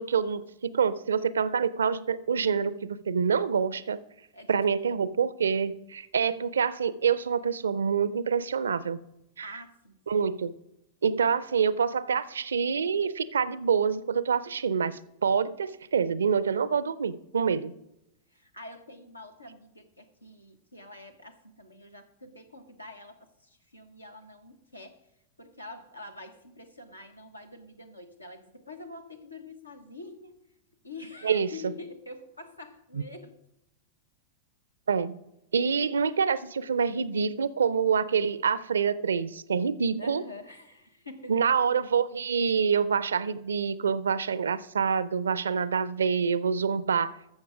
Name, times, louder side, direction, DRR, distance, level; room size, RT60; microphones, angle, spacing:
voice 1, 0.0-4.0 4.5-9.0 9.4-9.5 10.1-10.5 11.0-17.7 31.2-31.7 32.9-33.0 34.9-35.2 35.5-40.2 41.3-47.1, right 6 dB, 70° right, 18 dB, 0.4 m, -26 dB
voice 2, 9.4-9.9 18.3-25.0 25.4-30.4 30.8-33.4 40.0-41.3, left 2 dB, 85° left, 7 dB, 1.1 m, -46 dB
13.5 x 6.4 x 4.9 m, 0.85 s
figure-of-eight pair, 90°, 0 cm